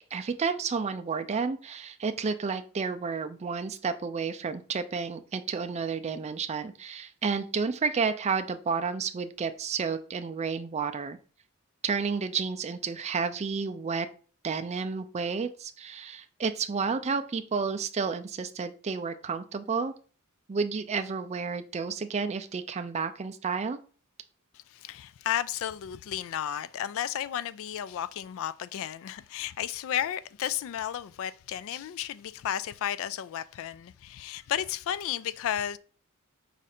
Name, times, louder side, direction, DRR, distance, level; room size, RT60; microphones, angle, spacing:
voice 1, 0.1-11.2 11.8-14.1 14.4-19.9 20.5-23.8, right 5 dB, 30° right, 0.4 m, -31 dB
voice 2, 24.5-35.8, left 10 dB, 65° left, 0.3 m, -33 dB
4.9 x 2.5 x 4.2 m
head